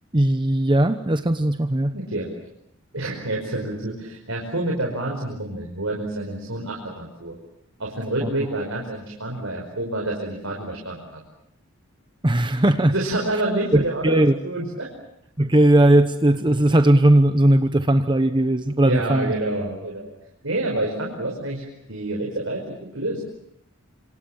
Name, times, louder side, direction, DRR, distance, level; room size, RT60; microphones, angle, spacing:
voice 1, 0.1-1.9 8.2-8.3 12.2-12.9 13.7-14.3 15.4-19.3, right 1 dB, 25° right, 9 dB, 1.0 m, -18 dB
voice 2, 1.9-2.3 2.9-7.4 7.8-11.2 12.9-14.9 18.8-20.1 20.4-23.2, right 1 dB, 70° right, -1 dB, 5.4 m, -28 dB
27.0 x 27.0 x 7.3 m, 0.76 s
head